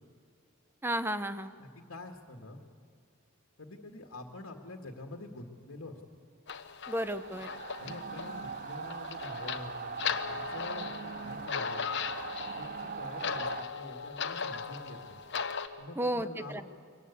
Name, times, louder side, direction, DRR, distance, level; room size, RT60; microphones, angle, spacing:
voice 1, 0.8-1.5 6.9-7.5 16.0-16.6, right 1 dB, 10° right, 11 dB, 0.7 m, -33 dB
voice 2, 1.6-2.6 3.6-6.0 7.8-12.0 12.5-15.2 15.8-16.6, left 2 dB, 75° left, 3 dB, 1.9 m, -46 dB
sound 1, 6.5-15.7, left 6 dB, 55° left, 1.1 m, -38 dB
sound 2, 7.1-13.6, right 6 dB, 40° right, 0.5 m, -41 dB
24.0 x 19.0 x 8.3 m, 2.3 s
head